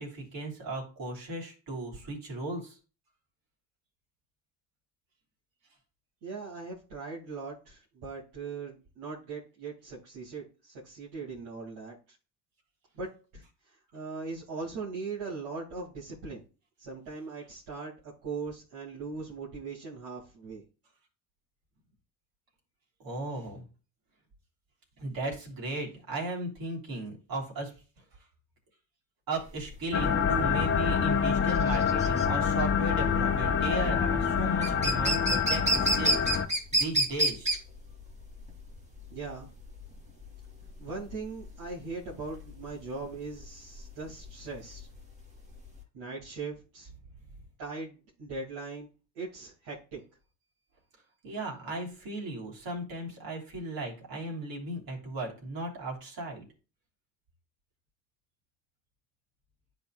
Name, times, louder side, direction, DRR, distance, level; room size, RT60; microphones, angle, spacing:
voice 1, 0.0-2.8 23.0-23.7 25.0-27.7 29.3-36.4 36.7-37.5 51.2-56.5, right 2 dB, 60° right, -1 dB, 3.2 m, -36 dB
voice 2, 6.2-12.2 12.9-16.4 16.8-20.6 39.1-39.5 40.8-44.9 45.9-46.9 47.6-48.9 49.1-50.0, right 4 dB, 75° right, -7 dB, 2.4 m, -40 dB
sound 1, 29.4-45.8, right 1 dB, 15° right, 2.0 m, -31 dB
sound 2, 29.9-36.5, left 7 dB, 30° left, 0.8 m, -26 dB
10.5 x 4.3 x 2.3 m, 0.35 s
supercardioid pair, 75°, 40 cm